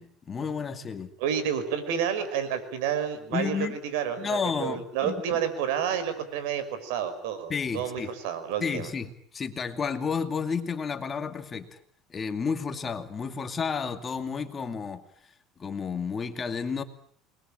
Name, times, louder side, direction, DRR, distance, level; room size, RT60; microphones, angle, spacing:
voice 1, 0.0-1.1 3.3-3.8 4.2-5.4 7.5-8.1 8.6-11.7 12.1-15.0 15.6-16.8, left 5 dB, 25° left, 8 dB, 2.4 m, -31 dB
voice 2, 1.2-8.9, right 8 dB, 85° right, 12 dB, 5.7 m, -30 dB
29.0 x 21.5 x 8.9 m, 0.62 s
cardioid pair, 145°, 0 cm